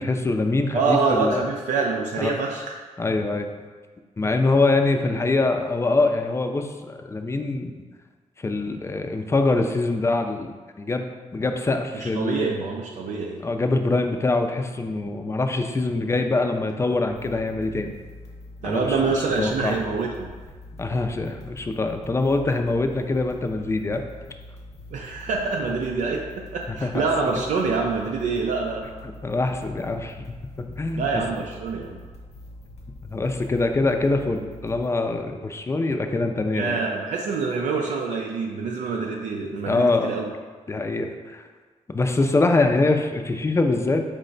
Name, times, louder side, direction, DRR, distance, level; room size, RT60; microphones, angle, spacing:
voice 1, 0.0-1.4 2.2-2.3 3.0-3.5 4.2-7.7 8.4-12.5 13.4-17.9 18.6-19.0 19.4-19.8 20.8-24.0 26.7-26.9 29.2-31.2 33.1-36.8 39.7-40.1 40.7-41.5 41.9-44.0, left 3 dB, 20° left, 5 dB, 0.4 m, -24 dB
voice 2, 0.7-2.7 11.9-13.4 18.6-20.3 24.9-28.9 30.9-32.0 36.5-40.3, right 4 dB, 85° right, -1 dB, 0.4 m, -26 dB
sound 1, 17.1-34.9, left 2 dB, 60° left, 0.8 m, -44 dB
4.6 x 2.1 x 3.8 m, 1.4 s
cardioid pair, 75°, 13 cm